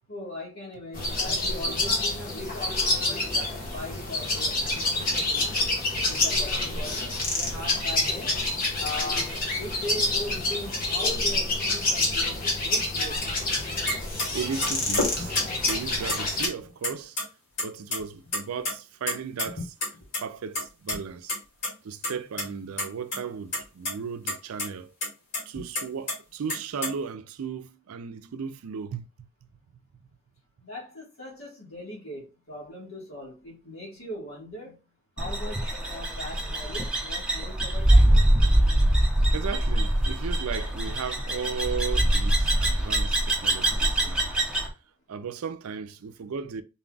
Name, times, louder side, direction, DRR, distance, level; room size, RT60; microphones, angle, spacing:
voice 1, 0.1-5.6 6.1-8.4 8.8-9.3 9.6-13.2 30.6-34.8 35.2-38.1, left 1 dB, 80° left, 1.7 m, -39 dB
sound 1, 0.9-16.5, left 2 dB, 40° left, 1.2 m, -27 dB
sound 2, 13.9-14.0 14.2-14.3 14.6-15.8 16.1-16.9 17.2-17.3 17.6-18.0 18.3-18.7 19.1-20.2 20.6-21.0 21.3-21.4 21.6-21.7 22.0-22.4 22.8-23.2 23.5-23.9 24.3-24.4 24.6-24.7 25.0-26.1 26.5-26.9, left 2 dB, 60° left, 2.1 m, -29 dB
voice 2, 14.3-15.4 15.6-17.2 17.6-19.7 20.2-21.4 21.8-24.9 25.5-29.3 39.3-44.3 45.1-46.6, right 6 dB, 90° right, 0.4 m, -35 dB
sound 3, 35.2-44.7, right 1 dB, 5° right, 0.7 m, -23 dB
4.0 x 2.3 x 3.8 m
head